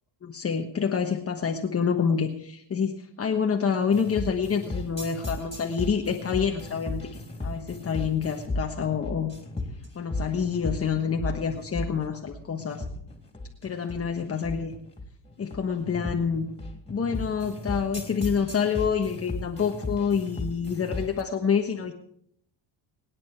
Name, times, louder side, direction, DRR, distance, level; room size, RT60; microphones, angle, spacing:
voice 1, 0.2-9.3 9.9-12.8 13.6-14.7 15.4-16.5 16.9-21.9, left 6 dB, 30° left, 3 dB, 1.3 m, -27 dB
sound 1, 3.9-21.2, left 2 dB, 10° left, 3.4 m, -35 dB
24.0 x 9.8 x 4.5 m, 0.68 s
cardioid pair, 110°, 48 cm